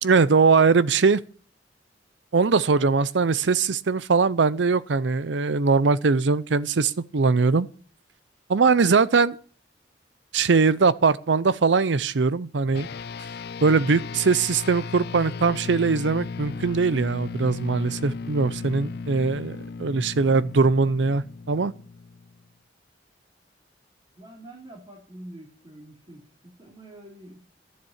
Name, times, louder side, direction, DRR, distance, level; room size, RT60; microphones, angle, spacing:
voice 1, 0.0-1.2 2.3-7.7 8.5-9.4 10.3-12.9 13.6-21.7, right 4 dB, 80° right, 0.6 m, -21 dB
sound 1, 12.7-22.5, left 4 dB, 60° left, 0.4 m, -36 dB
voice 2, 24.1-27.4, right 1 dB, 30° right, 3.0 m, -45 dB
11.5 x 7.5 x 6.5 m
head